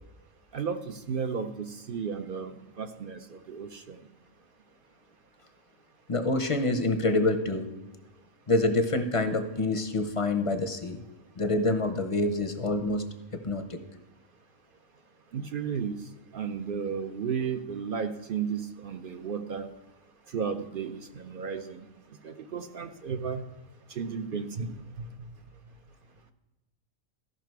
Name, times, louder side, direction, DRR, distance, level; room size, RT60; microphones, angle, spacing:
voice 1, 0.5-2.5 2.8-4.0 15.3-16.0 16.3-19.7 20.3-21.8 22.2-23.4 23.9-25.1, right 6 dB, 55° right, 8 dB, 0.6 m, -33 dB
voice 2, 6.1-7.7 8.5-11.0 11.4-13.0 13.4-13.8, left 2 dB, 35° left, 7 dB, 0.6 m, -26 dB
14.0 x 5.8 x 4.6 m, 1.1 s
omnidirectional pair, 1.4 m